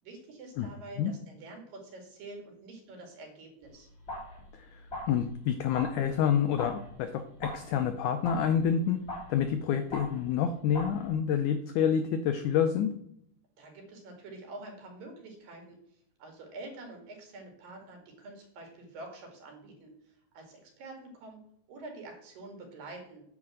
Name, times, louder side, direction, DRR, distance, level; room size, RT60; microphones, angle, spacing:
voice 1, 0.0-3.9 13.6-15.8 16.2-19.9 20.3-21.4 21.7-23.2, right 2 dB, 65° right, 2 dB, 3.9 m, -47 dB
sound 1, 3.6-11.1, left 1 dB, 15° left, 3.2 m, -43 dB
voice 2, 5.1-9.0 9.3-12.9, left 8 dB, 85° left, 8 dB, 1.7 m, -28 dB
9.6 x 4.8 x 7.6 m, 0.71 s
omnidirectional pair, 4.4 m